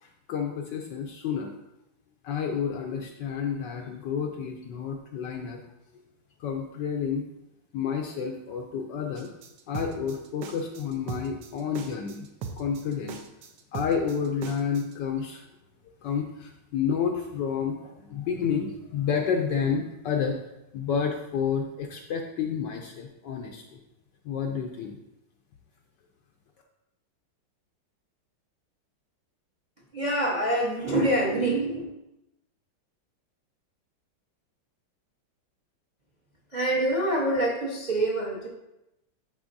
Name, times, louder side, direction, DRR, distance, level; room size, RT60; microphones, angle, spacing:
voice 1, 0.0-1.5 2.2-5.6 6.4-7.2 7.7-9.3 9.7-12.3 12.6-13.2 13.7-15.5 16.0-20.4 20.7-23.8 24.2-25.0, left 6 dB, 70° left, 2 dB, 1.1 m, -30 dB
sound 1, 9.2-14.9, right 5 dB, 70° right, 1.1 m, -39 dB
voice 2, 29.9-31.8 36.5-38.5, right 1 dB, 35° right, -4 dB, 0.7 m, -25 dB
10.5 x 4.5 x 2.6 m, 0.90 s
omnidirectional pair, 2.3 m